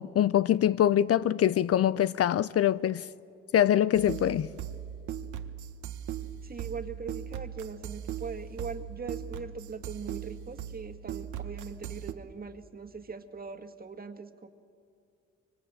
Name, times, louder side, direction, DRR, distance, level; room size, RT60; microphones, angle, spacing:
voice 1, 0.0-3.0 3.5-4.5, left 11 dB, 50° left, 0.5 m, -24 dB
sound 1, 3.9-12.1, right 10 dB, 75° right, 1.2 m, -39 dB
voice 2, 6.4-14.5, right 5 dB, 30° right, 1.8 m, -41 dB
25.5 x 24.0 x 8.8 m
cardioid pair, 90°, 30 cm